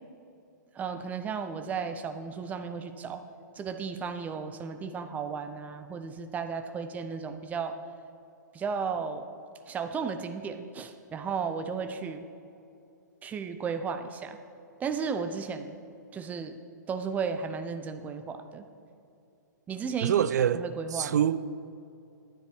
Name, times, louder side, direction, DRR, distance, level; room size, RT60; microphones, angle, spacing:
voice 1, 0.7-3.2 3.6-7.8 8.5-9.3 9.7-12.3 13.2-14.4 14.8-15.8 16.1-16.6 16.9-18.6 19.7-21.2, right 5 dB, 15° right, 0.6 m, -34 dB
voice 2, 20.0-20.6 20.9-21.4, right 9 dB, 60° right, 0.4 m, -24 dB
11.0 x 9.6 x 4.4 m
figure-of-eight pair, 120°, 10 cm